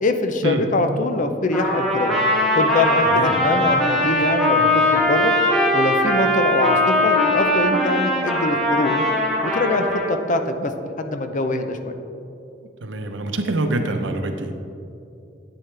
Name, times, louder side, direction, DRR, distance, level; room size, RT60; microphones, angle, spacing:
voice 1, 0.0-2.1 2.6-5.3 5.7-9.0 9.4-10.7 11.0-11.9, left 2 dB, 45° left, 7 dB, 0.6 m, -23 dB
Trumpet, 1.5-10.1, left 1 dB, ahead, 1.8 m, -20 dB
voice 2, 3.1-3.4 12.8-14.5, right 2 dB, 90° right, 6 dB, 0.8 m, -25 dB
10.0 x 8.8 x 3.3 m, 2.7 s
head